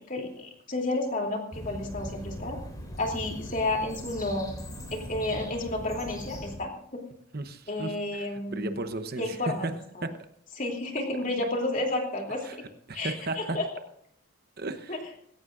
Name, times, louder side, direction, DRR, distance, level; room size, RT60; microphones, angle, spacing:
voice 1, 0.0-2.6 2.9-4.5 4.9-7.0 7.7-8.7 9.1-10.1 10.6-12.6 12.9-13.7 14.9-15.0, left 2 dB, 35° left, 1 dB, 3.0 m, -31 dB
sound 1, 1.5-6.6, equal, 15° left, 3.4 m, -40 dB
sound 2, 3.0-4.9, left 6 dB, 75° left, 6.7 m, -59 dB
voice 2, 7.3-9.4 9.6-9.7 12.5-12.6 12.9-13.6 14.6-15.0, right 2 dB, 45° right, 8 dB, 0.9 m, -35 dB
20.0 x 17.0 x 2.6 m, 0.68 s
head